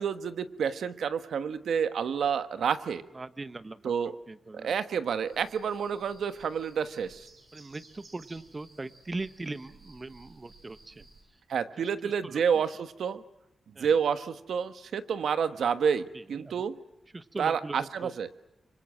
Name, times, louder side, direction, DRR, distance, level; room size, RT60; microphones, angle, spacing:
voice 1, 0.0-3.1 3.8-4.1 4.5-7.3 11.5-13.2 13.8-16.8 17.4-18.3, right 7 dB, 90° right, 11 dB, 1.3 m, -29 dB
voice 2, 3.1-3.8 4.3-4.7 7.5-11.1 11.8-12.4 13.8-13.9 16.1-16.6 17.1-18.1, right 2 dB, 25° right, 13 dB, 1.1 m, -40 dB
sound 1, 5.2-11.2, right 3 dB, 55° right, 7.1 m, -57 dB
25.5 x 25.0 x 7.8 m, 0.91 s
wide cardioid pair, 120°, 0 cm